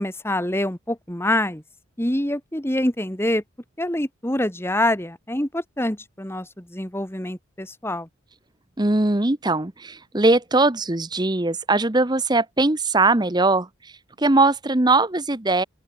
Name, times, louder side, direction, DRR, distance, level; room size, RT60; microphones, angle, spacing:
voice 1, 0.0-1.6 2.0-3.4 3.8-8.1, left 1 dB, 10° left, 1.7 m, -25 dB
voice 2, 8.8-15.6, right 2 dB, 20° right, 0.9 m, -20 dB
open air
head